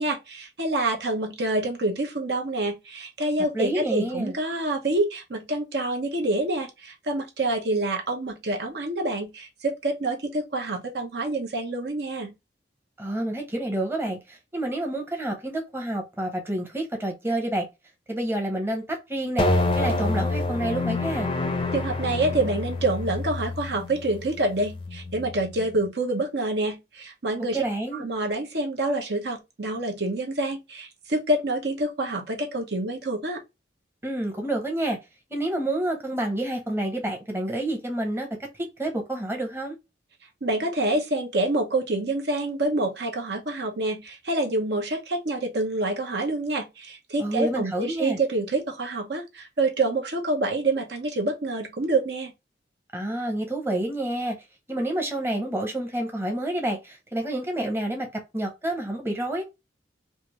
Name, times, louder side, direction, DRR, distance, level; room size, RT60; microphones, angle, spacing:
voice 1, 0.0-12.3 21.7-27.6 27.9-33.4 40.4-52.3, right 2 dB, 65° right, 0.9 m, -27 dB
voice 2, 3.5-4.4 13.0-17.7 18.1-19.5 19.7-21.3 27.5-28.1 34.0-35.0 35.3-38.3 38.5-39.7 47.2-48.2 52.9-54.4 54.7-58.1 58.3-59.4, right 1 dB, 15° right, 0.9 m, -28 dB
sound 1, 19.4-25.9, left 2 dB, 30° left, 0.5 m, -28 dB
3.3 x 2.6 x 2.9 m
head